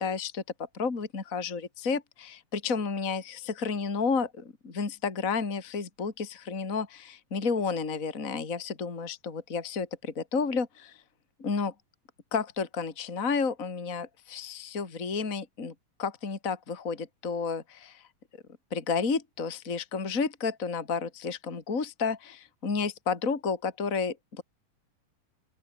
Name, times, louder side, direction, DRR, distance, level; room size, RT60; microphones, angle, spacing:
voice 1, 0.0-11.0 11.4-11.7 12.3-15.7 16.0-18.0 18.7-24.4, left 5 dB, 25° left, 3.0 m, -31 dB
open air
omnidirectional pair, 4.0 m